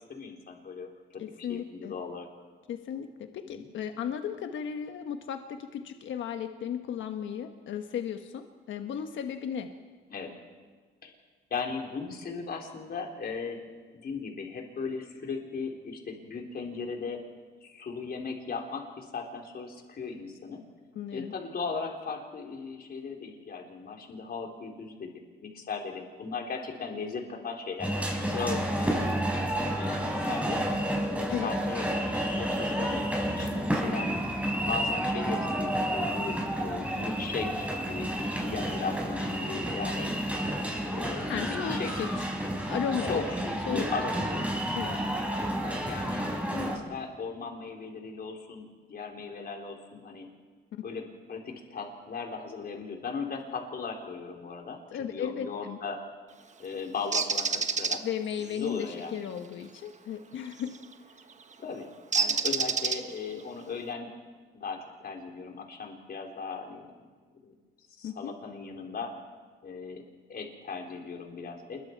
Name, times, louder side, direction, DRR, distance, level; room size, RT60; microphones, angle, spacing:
voice 1, 0.1-2.3 3.4-3.7 10.1-10.3 11.0-11.1 11.5-13.6 14.0-17.2 17.6-20.6 21.1-27.9 28.2-29.2 29.7-30.7 31.2-34.1 34.6-40.1 40.9-42.1 43.0-44.4 45.5-50.3 50.8-56.0 56.6-58.0 58.4-59.3 61.6-64.1 64.5-67.1 67.4-67.5 68.0-69.2 69.6-70.0 70.3-71.8, left 5 dB, 50° left, 1 dB, 4.0 m, -37 dB
voice 2, 1.2-1.9 2.7-9.7 20.9-21.3 31.3-31.5 41.3-42.1 42.7-43.2 43.7-43.9 44.7-45.0 50.8-50.9 54.9-55.8 58.0-60.7 68.0-68.3, left 8 dB, 75° left, 6 dB, 1.3 m, -35 dB
sound 1, 27.8-46.8, right 1 dB, 5° right, 5.1 m, -30 dB
Bird, 57.1-58.0 60.6-60.8 62.1-63.3, right 5 dB, 35° right, 1.3 m, -27 dB
27.5 x 22.5 x 4.7 m, 1.5 s
cardioid pair, 90°, 20 cm